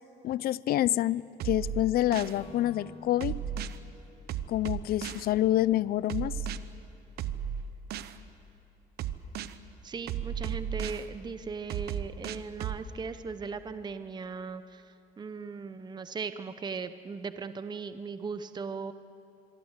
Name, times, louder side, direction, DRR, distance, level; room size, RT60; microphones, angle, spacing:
voice 1, 0.2-3.4 4.5-6.3, left 13 dB, 65° left, 20 dB, 0.6 m, -27 dB
sound 1, 1.4-2.4 3.2-3.8 4.3-5.3 6.1-6.6 7.2-8.1 9.0-9.5 10.1-11.0 11.7-12.8, right 9 dB, 70° right, 1.0 m, -34 dB
Acoustic guitar / Strum, 2.3-5.7, left 3 dB, 35° left, 4.1 m, -53 dB
voice 2, 9.8-18.9, right 5 dB, 25° right, 11 dB, 0.8 m, -38 dB
25.5 x 23.0 x 8.2 m, 2.8 s
cardioid pair, 110°, 17 cm